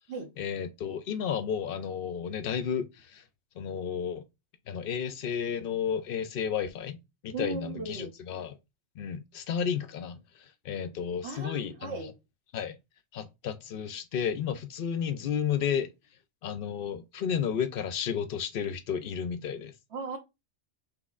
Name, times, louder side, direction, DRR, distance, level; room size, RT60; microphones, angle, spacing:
voice 1, 0.4-3.2 3.6-4.2 4.7-7.0 7.2-8.6 9.0-12.0 12.5-12.8 13.1-15.9 16.4-19.7, left 8 dB, 60° left, 0.6 m, -32 dB
voice 2, 7.3-8.1 11.2-12.2 19.9-20.2, right 3 dB, 65° right, 1.2 m, -37 dB
6.1 x 3.1 x 2.4 m
omnidirectional pair, 1.2 m